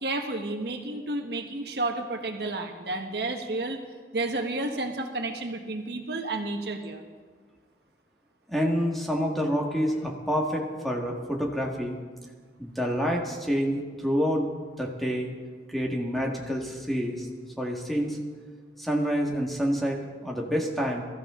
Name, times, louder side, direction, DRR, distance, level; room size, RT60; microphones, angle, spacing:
voice 1, 0.0-3.8 4.1-7.0, right 2 dB, 65° right, 4 dB, 1.4 m, -31 dB
voice 2, 8.5-12.0 12.6-15.3 15.7-17.3 17.6-18.2 18.8-21.0, equal, ahead, 0 dB, 1.7 m, -28 dB
21.0 x 14.0 x 3.8 m, 1.5 s
head